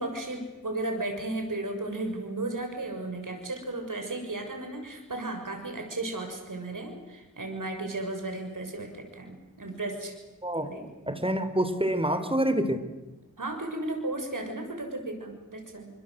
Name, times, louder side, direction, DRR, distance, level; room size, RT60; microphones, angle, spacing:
voice 1, 0.0-10.1 10.6-11.2 13.4-15.9, right 2 dB, 75° right, 4 dB, 6.5 m, -34 dB
voice 2, 11.1-12.8, right 1 dB, 15° right, 10 dB, 3.7 m, -26 dB
28.5 x 25.0 x 8.0 m, 1.1 s
wide cardioid pair, 45°, 32 cm